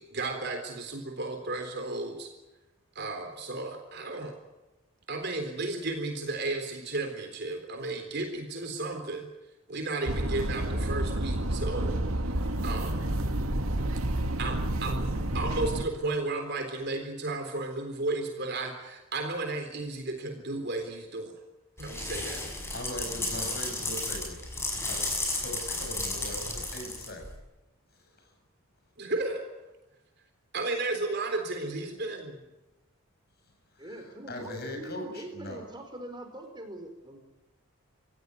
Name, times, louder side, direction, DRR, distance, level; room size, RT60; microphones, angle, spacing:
voice 1, 0.0-2.3 3.0-4.3 5.1-9.3 9.7-12.0 12.6-13.1 14.4-21.3 21.8-22.4 29.0-29.4 30.5-32.4, right 2 dB, 50° right, 4 dB, 3.8 m, -33 dB
sound 1, 10.1-15.8, right 1 dB, 80° right, 2.3 m, -29 dB
sound 2, 21.8-27.4, left 2 dB, 10° left, 6.1 m, -33 dB
voice 2, 22.7-24.4 24.8-27.3 27.9-28.3 33.8-35.6, left 1 dB, 50° left, 4 dB, 7.5 m, -40 dB
voice 3, 33.8-37.2, right 1 dB, 20° right, 5 dB, 4.7 m, -43 dB
27.0 x 16.5 x 9.6 m, 1.1 s
head